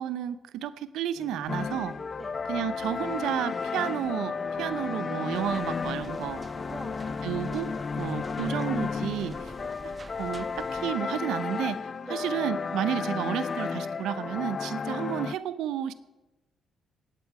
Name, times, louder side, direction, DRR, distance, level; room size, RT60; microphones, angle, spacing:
voice 1, 0.0-2.0 2.5-6.4 7.2-9.5 10.2-11.8 12.1-15.9, right 10 dB, 85° right, 12 dB, 0.6 m, -31 dB
sound 1, 1.1-9.4, equal, 15° left, 1.4 m, -52 dB
sound 2, 1.5-15.3, left 5 dB, 40° left, 0.3 m, -33 dB
voice 2, 4.6-5.1 6.7-7.2 12.0-12.3, right 2 dB, 10° right, 6 dB, 1.1 m, -44 dB
sound 3, 5.3-10.9, right 3 dB, 30° right, 0.5 m, -47 dB
17.0 x 8.3 x 4.8 m, 1.1 s
cardioid pair, 90°, 0 cm